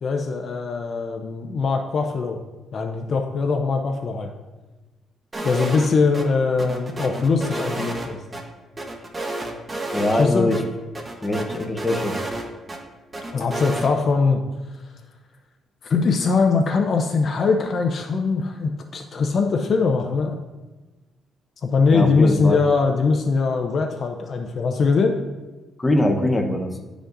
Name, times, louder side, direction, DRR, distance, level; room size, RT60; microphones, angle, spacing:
voice 1, 0.0-2.4 2.7-4.3 5.4-8.2 10.1-10.5 13.3-14.4 14.7-14.9 15.8-20.4 21.6-25.2, left 4 dB, 50° left, 3 dB, 0.6 m, -21 dB
sound 1, 5.3-5.9 6.1-6.3 6.6-8.4 8.8-10.3 10.5-10.6 10.9-12.8 13.1-13.9, right 2 dB, 25° right, 1.0 m, -30 dB
voice 2, 9.9-10.6 11.2-12.2 21.9-22.6 25.8-26.7, left 1 dB, 20° left, 3 dB, 0.9 m, -22 dB
11.0 x 5.0 x 2.6 m, 1.2 s
cardioid pair, 90°, 0 cm